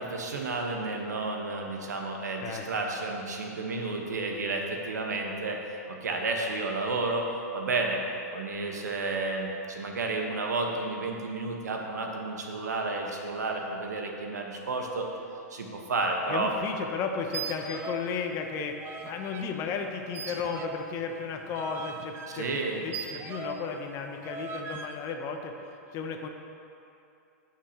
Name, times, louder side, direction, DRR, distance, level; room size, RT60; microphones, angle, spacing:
voice 1, 0.0-7.3 7.5-8.0 8.3-15.1 15.5-16.5 22.3-22.8, right 3 dB, 85° right, 1 dB, 1.2 m, -31 dB
voice 2, 16.3-25.5 25.9-26.3, left 5 dB, 35° left, 4 dB, 0.8 m, -34 dB
sound 1, 17.2-18.1 18.4-19.5 20.1-23.7 24.2-25.0, right 4 dB, 25° right, 0.7 m, -39 dB
14.5 x 5.8 x 2.9 m, 2.7 s
hypercardioid pair, 125°, 9 cm